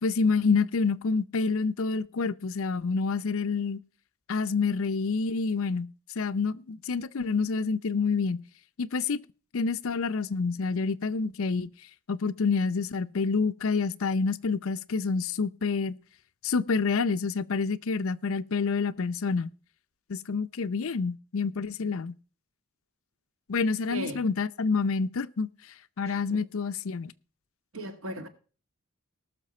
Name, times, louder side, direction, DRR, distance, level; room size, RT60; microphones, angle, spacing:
voice 1, 0.0-3.8 4.3-5.9 6.2-8.4 8.8-9.2 9.5-11.7 12.1-16.0 16.4-19.5 20.1-22.1 23.5-25.5 26.0-27.1, left 4 dB, 70° left, 0.5 m, -28 dB
voice 2, 23.9-24.2 26.1-26.4 27.7-28.3, equal, 70° right, 1.7 m, -37 dB
19.0 x 6.5 x 4.3 m
head